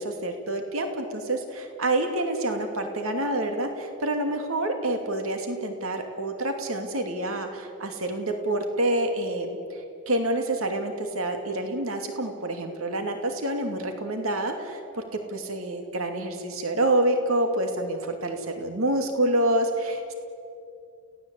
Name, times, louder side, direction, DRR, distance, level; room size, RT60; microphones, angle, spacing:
voice 1, 0.0-9.6 10.1-20.1, right 1 dB, 85° right, 5 dB, 2.5 m, -27 dB
30.0 x 17.5 x 8.3 m, 2.6 s
head